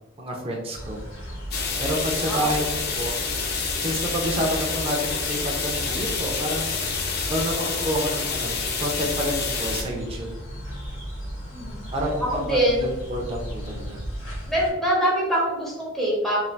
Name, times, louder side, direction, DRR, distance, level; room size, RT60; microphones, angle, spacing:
voice 1, 0.2-1.0 1.8-3.2 3.8-6.7 7.3-10.3 11.9-12.4 12.8-14.0, equal, 30° right, -1 dB, 0.5 m, -29 dB
sound 1, 0.7-14.7, equal, 70° left, 1.3 m, -36 dB
sound 2, 1.5-9.8, left 5 dB, 55° left, 0.5 m, -28 dB
voice 2, 2.2-2.6 11.5-11.8 12.3-12.9 14.5-16.4, equal, ahead, -5 dB, 0.9 m, -24 dB
3.2 x 2.6 x 2.3 m, 1.1 s
head